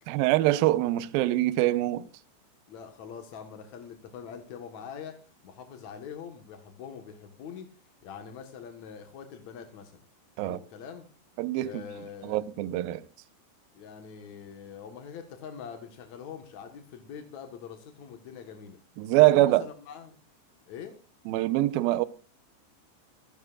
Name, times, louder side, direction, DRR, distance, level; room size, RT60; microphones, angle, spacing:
voice 1, 0.1-2.1 10.4-10.6 11.4-11.8 12.2-13.0 19.0-19.6 21.3-22.1, right 16 dB, 75° right, 2.3 m, -24 dB
voice 2, 2.7-7.7 8.0-10.0 10.4-11.1 11.6-12.4 13.8-18.8 19.3-20.2 20.7-20.9, left 7 dB, 60° left, 2.0 m, -44 dB
26.0 x 11.5 x 2.5 m
omnidirectional pair, 5.2 m